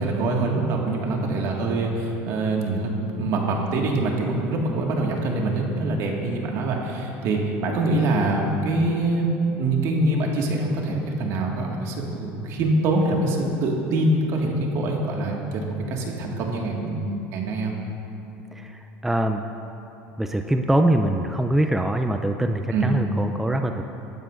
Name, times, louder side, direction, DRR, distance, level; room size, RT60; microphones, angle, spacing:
voice 1, 0.0-17.7 22.7-22.9, right 2 dB, 60° right, 0 dB, 1.9 m, -24 dB
voice 2, 18.5-19.4 20.2-23.8, right 1 dB, 5° right, 5 dB, 0.5 m, -23 dB
18.0 x 12.0 x 2.6 m, 2.9 s
supercardioid pair, 110°, 6 cm